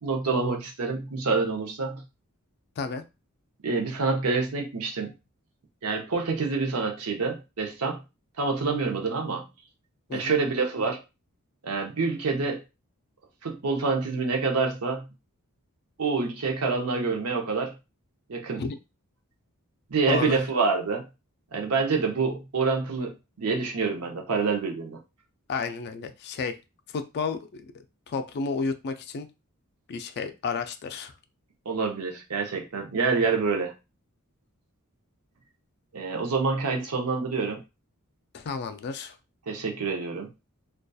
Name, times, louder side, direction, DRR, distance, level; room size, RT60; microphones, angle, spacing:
voice 1, 0.0-2.0 3.6-5.1 5.8-8.0 8.4-9.5 10.1-11.0 11.6-12.6 13.4-15.0 16.0-17.7 18.3-18.6 19.9-21.0 21.5-25.0 31.7-33.7 35.9-37.6 39.5-40.3, right 4 dB, 80° right, 2 dB, 0.7 m, -27 dB
voice 2, 20.1-20.4 25.5-26.6 26.9-27.7 28.1-29.3 29.9-31.1 38.3-39.1, left 4 dB, 50° left, 9 dB, 0.3 m, -31 dB
2.6 x 2.3 x 2.3 m, 0.26 s
head